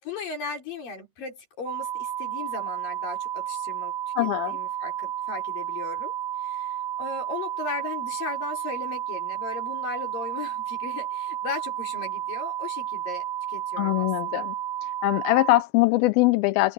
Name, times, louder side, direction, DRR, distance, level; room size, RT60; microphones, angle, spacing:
voice 1, 0.0-6.2 6.4-14.4, left 4 dB, 65° left, 6.6 m, -37 dB
sound 1, 1.7-15.6, right 11 dB, 60° right, 1.9 m, -32 dB
voice 2, 4.2-4.6 13.8-14.6 14.8-16.7, left 19 dB, 80° left, 2.5 m, -22 dB
omnidirectional pair, 4.3 m